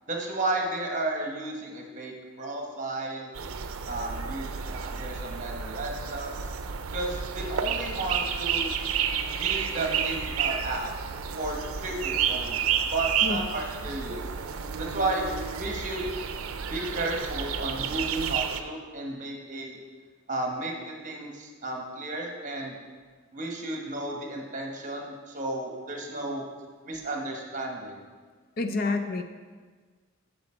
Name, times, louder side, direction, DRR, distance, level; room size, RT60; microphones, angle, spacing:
voice 1, 0.1-3.3 3.9-6.3 6.9-8.7 9.3-10.9 11.4-14.2 14.8-15.2 15.6-16.1 16.7-19.8 20.3-22.8 23.3-26.5 26.8-28.0, right 2 dB, 35° right, 1 dB, 1.2 m, -33 dB
sound 1, 3.4-18.6, right 7 dB, 85° right, 0.5 m, -31 dB
voice 2, 28.6-29.2, left 3 dB, 45° left, 7 dB, 0.5 m, -28 dB
8.1 x 6.7 x 4.4 m, 1.5 s
head